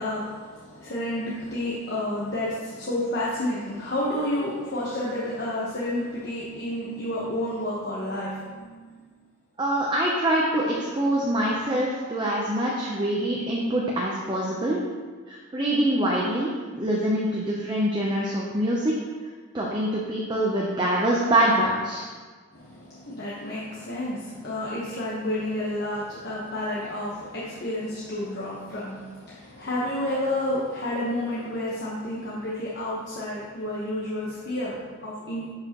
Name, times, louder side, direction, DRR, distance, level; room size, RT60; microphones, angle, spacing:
voice 1, 0.0-9.0 22.5-35.5, left 1 dB, 50° left, -7 dB, 1.1 m, -30 dB
voice 2, 9.6-14.8 15.3-18.9 19.5-22.1, right 1 dB, 20° right, -4 dB, 0.7 m, -25 dB
11.5 x 4.9 x 3.0 m, 1.5 s
head